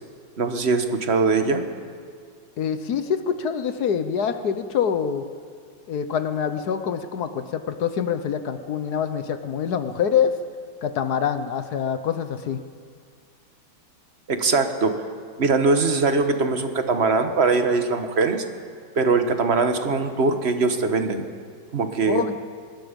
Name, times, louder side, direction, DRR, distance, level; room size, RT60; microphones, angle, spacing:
voice 1, 0.4-1.6 14.3-15.0 15.4-18.4 18.9-21.3 21.7-22.2, right 4 dB, 35° right, 6 dB, 1.4 m, -21 dB
voice 2, 2.6-5.2 5.9-10.3 10.8-12.6 22.1-22.3, left 7 dB, 60° left, 9 dB, 1.3 m, -25 dB
25.5 x 20.5 x 5.3 m, 2.1 s
omnidirectional pair, 2.2 m